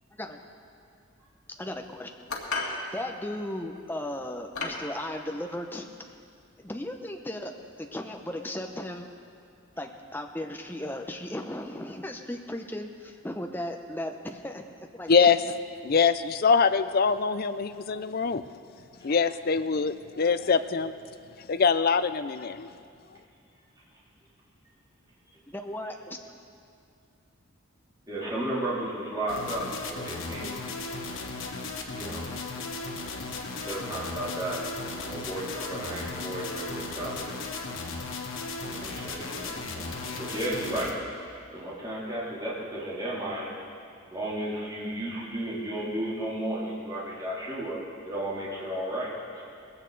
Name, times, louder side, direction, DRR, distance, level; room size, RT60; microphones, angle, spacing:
voice 1, 1.6-2.3 2.9-6.1 6.6-7.5 7.8-9.1 9.8-14.6 14.9-15.3 25.5-26.2, left 1 dB, 10° left, 3 dB, 0.8 m, -36 dB
sound 1, 2.3-2.8 3.8-3.9 4.5-4.9, left 3 dB, 90° left, 2.1 m, -32 dB
voice 2, 15.8-18.4 19.0-20.9 21.5-22.7, left 5 dB, 45° left, 11 dB, 0.4 m, -23 dB
voice 3, 28.1-30.7 31.9-32.2 33.5-34.6 35.0-37.4 38.6-40.9 41.5-43.6 44.1-49.4, right 1 dB, 20° right, -8 dB, 3.1 m, -34 dB
sound 2, 29.3-40.9, left 3 dB, 65° left, 1.4 m, -36 dB
19.0 x 16.0 x 4.0 m, 2.4 s
head